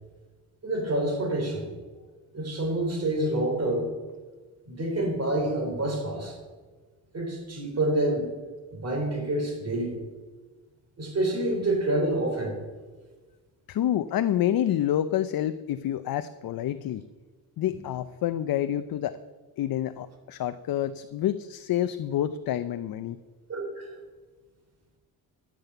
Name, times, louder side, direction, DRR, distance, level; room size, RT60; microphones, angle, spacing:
voice 1, 0.6-1.7 2.3-3.9 4.7-6.4 7.1-8.3 8.7-9.9 11.0-12.6 17.7-17.8 23.5-23.9, right 1 dB, 40° right, 2 dB, 3.6 m, -27 dB
voice 2, 13.7-17.0 17.6-19.2 19.6-23.2, left 11 dB, 65° left, 11 dB, 0.6 m, -28 dB
13.0 x 7.6 x 6.7 m, 1.3 s
cardioid pair, 115°, 38 cm